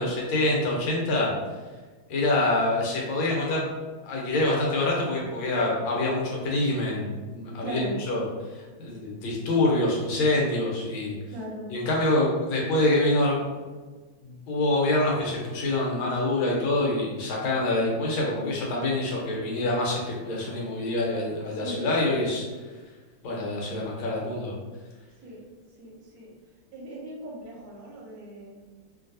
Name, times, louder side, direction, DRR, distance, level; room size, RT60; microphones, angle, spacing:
voice 1, 0.0-1.3 2.1-3.7 4.0-8.2 8.8-11.1 11.7-13.4 14.2-22.4 23.2-24.6, left 2 dB, 75° left, -3 dB, 1.6 m, -26 dB
voice 2, 7.5-8.0 11.3-11.7 21.5-21.8 25.2-25.4 25.8-26.3 26.7-28.6, right 1 dB, 60° right, -2 dB, 1.0 m, -39 dB
3.3 x 2.6 x 2.6 m, 1.3 s
omnidirectional pair, 2.3 m